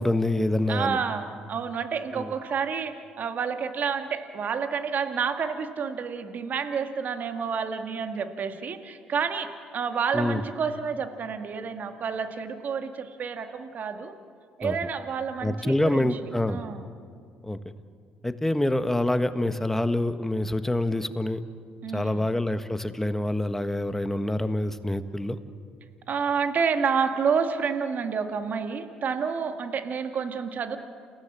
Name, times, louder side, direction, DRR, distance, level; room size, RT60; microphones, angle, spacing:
voice 1, 0.0-1.0 2.1-2.3 10.1-10.4 14.6-14.8 15.4-16.6 17.4-17.6 18.2-21.4 21.9-25.4, left 1 dB, 10° left, 10 dB, 1.6 m, -26 dB
voice 2, 0.7-9.5 9.7-14.1 14.6-16.1 16.5-16.8 21.8-22.2 26.1-30.8, right 6 dB, 55° right, 7 dB, 2.1 m, -29 dB
29.5 x 17.0 x 7.6 m, 2.2 s
hypercardioid pair, 55°, 4 cm